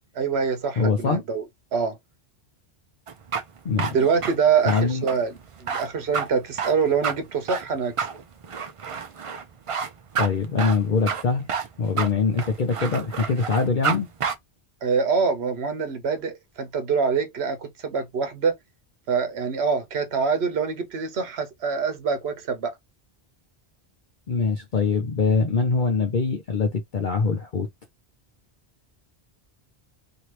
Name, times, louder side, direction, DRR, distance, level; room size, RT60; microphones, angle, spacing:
voice 1, 0.1-1.4 1.7-2.0 3.9-7.9 14.8-18.6 19.1-22.7, right 5 dB, 80° right, 1.1 m, -25 dB
voice 2, 0.8-1.2 3.6-4.0 4.6-5.0 10.2-11.5 11.8-14.1 24.3-27.7, left 4 dB, 55° left, 0.7 m, -23 dB
sound 1, 3.1-14.0 14.2-14.3, right 6 dB, 45° right, 0.5 m, -29 dB
2.8 x 2.7 x 3.1 m
omnidirectional pair, 1.1 m